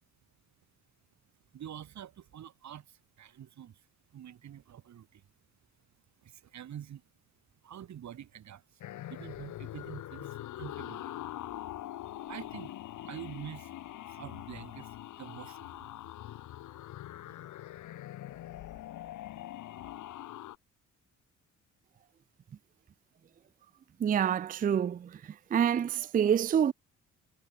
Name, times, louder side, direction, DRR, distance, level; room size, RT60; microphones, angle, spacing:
voice 1, 1.5-3.8 4.1-5.2 6.2-7.0 7.6-11.2 11.5-11.6 12.3-12.8 13.0-13.7 14.1-15.9 16.3-16.4, right 10 dB, 65° right, 7.0 m, -46 dB
sound 1, 8.8-20.6, left 13 dB, 80° left, 4.5 m, -43 dB
voice 2, 24.0-25.1 25.5-26.7, right 8 dB, 30° right, 0.4 m, -27 dB
cardioid pair, 90°, 30 cm